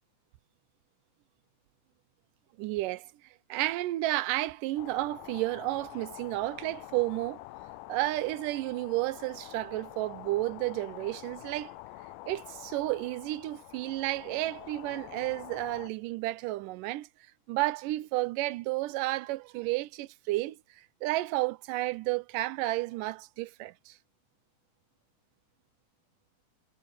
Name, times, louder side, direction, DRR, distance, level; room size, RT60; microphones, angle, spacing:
voice 1, 2.6-3.1 3.5-7.4 7.9-11.7 12.3-17.1 17.5-24.0, right 18 dB, 85° right, 2.3 m, -32 dB
sound 1, 4.8-15.9, left 18 dB, 90° left, 2.2 m, -47 dB
omnidirectional pair, 3.7 m